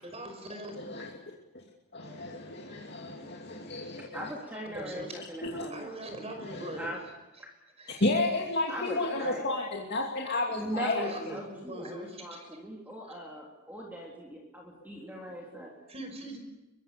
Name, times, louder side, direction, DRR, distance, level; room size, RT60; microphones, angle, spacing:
voice 1, 0.0-0.8 4.5-5.1 5.7-7.0 7.8-8.0 9.2-9.3 9.6-9.7 10.8-12.5 15.9-16.4, right 1 dB, 30° right, 5 dB, 5.7 m, -41 dB
voice 2, 0.8-1.1 1.5-1.6 1.9-4.3 5.4-5.7 6.4-6.9 8.0-11.1, left 2 dB, 50° left, -1 dB, 2.6 m, -32 dB
voice 3, 4.1-5.9 6.7-7.0 7.4-7.5 8.7-9.5 10.5-15.7, equal, 10° right, -2 dB, 3.4 m, -40 dB
24.0 x 22.5 x 6.9 m, 1.0 s
head